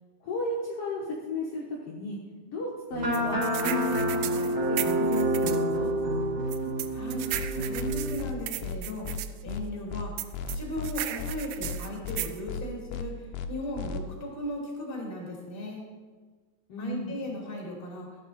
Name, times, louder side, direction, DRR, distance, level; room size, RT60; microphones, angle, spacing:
voice 1, 0.2-2.2 2.5-5.9 16.7-17.1, left 1 dB, 65° left, -4 dB, 1.4 m, -34 dB
sound 1, 2.9-8.2, right 1 dB, 30° right, 3.5 m, -28 dB
sound 2, 3.1-5.6 6.5-9.3 10.2-12.4, right 14 dB, 80° right, 2.3 m, -35 dB
voice 2, 6.9-7.3 7.5-9.1 9.4-10.1 10.5-15.8 16.8-18.1, left 1 dB, 20° left, -1 dB, 2.0 m, -37 dB
sound 3, 7.3-7.5 7.8-7.9 8.2-8.3 8.6-8.8 9.0-9.2 9.5-9.6 9.9-10.0 10.3-10.9 11.2-11.3 11.6-11.8 12.0-12.2 12.5-12.6 12.9-13.0 13.3-13.5 13.8-14.0, left 7 dB, 85° left, 1.8 m, -35 dB
13.5 x 8.6 x 4.2 m, 1.4 s
omnidirectional pair, 4.5 m